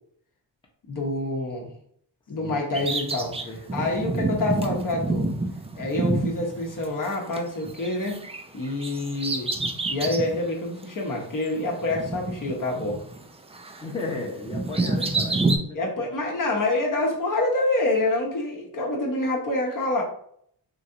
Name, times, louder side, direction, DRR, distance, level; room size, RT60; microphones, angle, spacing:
voice 1, 0.9-1.7 2.3-5.3 5.7-8.2 8.5-9.5 9.9-13.0 14.9-15.1 15.7-20.0, left 2 dB, 50° left, -1 dB, 0.9 m, -27 dB
voice 2, 2.4-2.9 3.4-3.9 13.8-16.0, left 3 dB, 10° left, -1 dB, 0.7 m, -36 dB
Bird vocalization bird call bird song, 2.7-7.4 7.6-10.4 10.8-10.9 11.8-13.3 13.5-15.6, right 2 dB, 15° right, 0.3 m, -28 dB
3.1 x 2.7 x 2.5 m, 0.67 s
cardioid pair, 60°, 41 cm